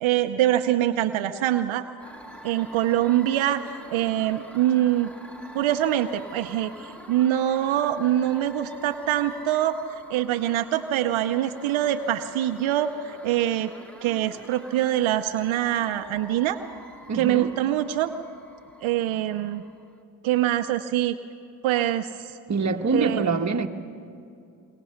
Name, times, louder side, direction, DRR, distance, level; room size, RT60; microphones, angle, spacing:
voice 1, 0.0-1.9 2.4-5.1 5.5-9.8 10.1-13.7 14.0-16.6 17.1-18.1 18.8-19.6 20.2-21.2 21.6-22.4 22.9-23.3, right 12 dB, 75° right, 7 dB, 0.8 m, -24 dB
sound 1, 2.0-20.0, right 1 dB, 5° left, 2.1 m, -46 dB
voice 2, 17.1-17.5 22.5-23.7, right 4 dB, 35° right, 4 dB, 1.5 m, -24 dB
26.0 x 22.5 x 5.8 m, 2.5 s
supercardioid pair, 55°, 47 cm